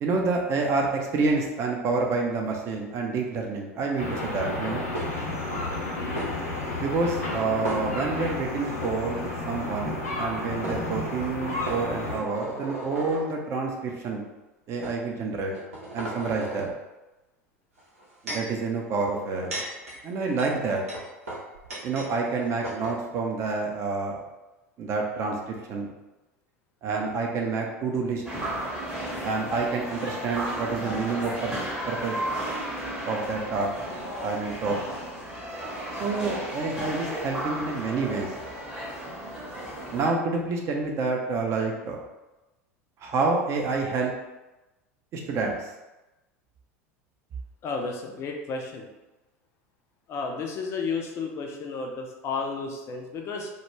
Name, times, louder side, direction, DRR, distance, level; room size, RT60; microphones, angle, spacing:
voice 1, 0.0-4.9 6.8-14.2 14.7-15.5 15.9-16.7 18.2-19.6 20.0-20.8 21.8-24.2 24.8-25.9 26.8-28.2 29.2-31.5 31.9-32.2 33.1-33.7 34.2-34.8 36.0-38.3 39.9-42.1 43.0-44.1 45.1-45.7, right 4 dB, 35° right, 0 dB, 0.5 m, -28 dB
sound 1, 4.0-12.2, left 2 dB, 80° left, 0.8 m, -32 dB
sound 2, 4.9-5.4 6.1-6.3 7.6-8.3 8.7-8.9 10.2-10.3 10.6-10.8 11.6-13.2 14.0-14.2 14.8-15.0 15.5-16.7 17.8-18.5 19.2-22.1 22.4-22.5 22.6-23.0, right 1 dB, 70° right, 0.7 m, -36 dB
sound 3, 28.2-40.1, right 1 dB, 10° right, 0.7 m, -34 dB
voice 2, 47.6-48.9 50.1-53.5, left 4 dB, 35° left, 2 dB, 0.4 m, -32 dB
2.2 x 2.1 x 3.0 m, 1.0 s
figure-of-eight pair, 75°, 8 cm